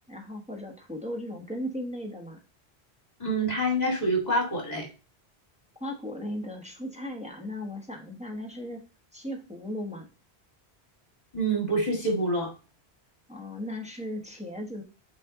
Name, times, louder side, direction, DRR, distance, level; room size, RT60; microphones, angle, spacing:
voice 1, 0.1-2.4 5.7-8.8 9.1-10.1 13.3-14.8, left 1 dB, 5° right, 1 dB, 1.1 m, -36 dB
voice 2, 3.2-4.9 11.3-12.5, right 1 dB, 40° left, 1 dB, 2.2 m, -26 dB
6.3 x 4.3 x 3.8 m, 0.33 s
omnidirectional pair, 1.1 m